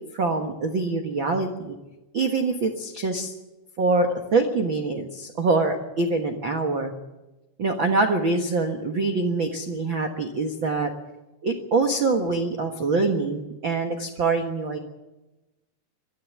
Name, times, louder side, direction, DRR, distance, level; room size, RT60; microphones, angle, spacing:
voice 1, 0.1-1.7 2.1-3.3 3.8-6.9 7.6-10.9 11.4-14.8, right 3 dB, 75° right, 4 dB, 1.1 m, -24 dB
23.0 x 13.5 x 9.7 m, 1.1 s
omnidirectional pair, 4.8 m